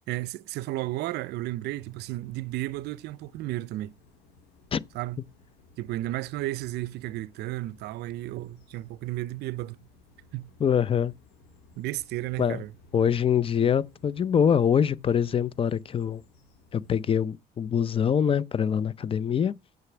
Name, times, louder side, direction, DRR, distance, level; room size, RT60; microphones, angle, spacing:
voice 1, 0.1-3.9 4.9-5.2 5.8-9.8 10.3-10.5 11.8-12.7, right 16 dB, 75° right, 0.5 m, -33 dB
sound 1, 1.8-17.1, left 3 dB, 80° left, 3.2 m, -58 dB
voice 2, 10.6-11.1 12.4-12.6 12.9-16.2 16.7-19.5, left 8 dB, 35° left, 0.5 m, -24 dB
6.8 x 6.6 x 6.0 m
cardioid pair, 110°, 17 cm